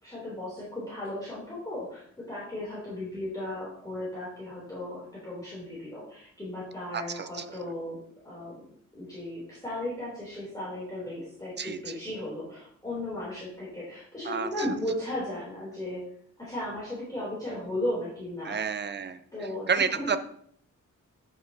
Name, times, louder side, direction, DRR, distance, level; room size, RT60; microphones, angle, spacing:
voice 1, 0.0-8.0 8.2-8.6 8.9-16.0 16.4-18.7 19.3-20.1, left 1 dB, 10° left, -8 dB, 2.8 m, -36 dB
voice 2, 6.9-7.6 11.6-11.9 14.2-14.5 18.4-19.2 19.7-20.2, right 6 dB, 35° right, 10 dB, 0.6 m, -30 dB
8.8 x 6.9 x 2.7 m, 0.64 s
wide cardioid pair, 140°, 31 cm